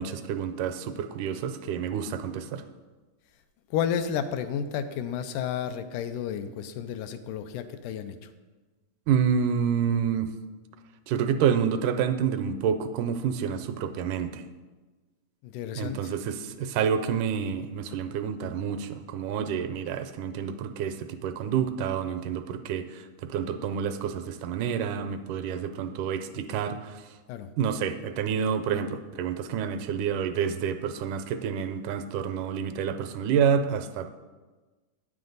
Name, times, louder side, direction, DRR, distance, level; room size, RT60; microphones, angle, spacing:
voice 1, 0.0-2.6 9.1-10.3 11.1-14.4 15.8-27.0 27.6-34.1, right 7 dB, 80° right, 9 dB, 2.0 m, -28 dB
voice 2, 3.7-8.2 15.4-16.1 27.3-27.5, left 8 dB, 80° left, 10 dB, 2.0 m, -31 dB
9.6 x 7.7 x 3.9 m, 1.3 s
omnidirectional pair, 3.6 m